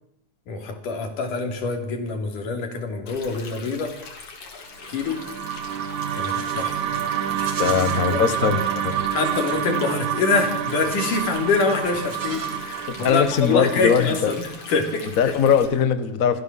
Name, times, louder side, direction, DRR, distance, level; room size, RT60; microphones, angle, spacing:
voice 1, 0.5-3.9 4.9-5.2 6.2-6.8 8.1-8.5 9.1-15.1, left 4 dB, 85° left, 5 dB, 4.7 m, -25 dB
Stream, 3.1-15.7, left 4 dB, 70° left, 4.7 m, -41 dB
sound 1, 4.9-15.2, right 9 dB, 70° right, 2.5 m, -28 dB
Livestock farm animals working animals, 5.9-6.7 7.3-8.0 9.1-9.6 10.7-11.4 11.9-13.0, right 3 dB, 35° right, 3.3 m, -39 dB
voice 2, 7.6-8.6 12.9-14.3 15.2-16.4, left 7 dB, 40° left, 10 dB, 1.2 m, -21 dB
25.5 x 15.5 x 7.5 m, 0.77 s
omnidirectional pair, 3.6 m